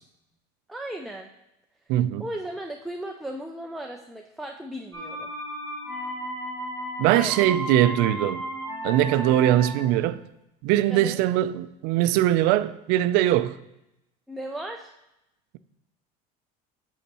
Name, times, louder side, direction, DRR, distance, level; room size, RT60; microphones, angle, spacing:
voice 1, 0.7-1.3 1.9-5.3 7.1-7.4 10.9-11.2 14.3-14.9, right 1 dB, ahead, 0.3 m, -36 dB
voice 2, 1.9-2.2 7.0-8.4 8.8-10.2 10.6-13.6, right 13 dB, 60° right, 0.4 m, -21 dB
sound 1, 4.9-10.0, equal, 15° left, 2.3 m, -34 dB
8.3 x 7.1 x 2.9 m
cardioid pair, 150°, 19 cm